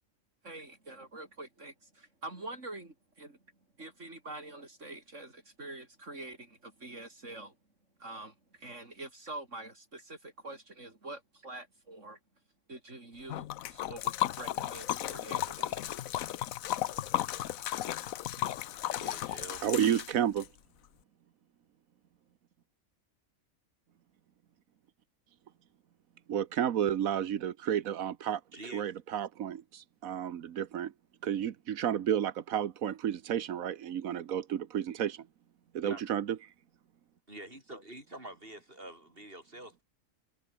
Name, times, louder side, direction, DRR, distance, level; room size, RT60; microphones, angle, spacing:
voice 1, 0.4-3.4 3.8-7.6 8.0-12.2 12.7-15.8, right 2 dB, 60° right, 4.7 m, -46 dB
Liquid, 13.3-20.5, left 12 dB, 90° left, 1.1 m, -34 dB
voice 2, 18.7-20.1 28.5-28.8 35.8-36.0 37.3-39.8, right 1 dB, 40° right, 7.9 m, -47 dB
voice 3, 19.6-20.5 26.3-28.4 28.7-30.9 31.2-35.2 35.7-36.3, right 10 dB, 90° right, 1.4 m, -31 dB
omnidirectional pair, 1.4 m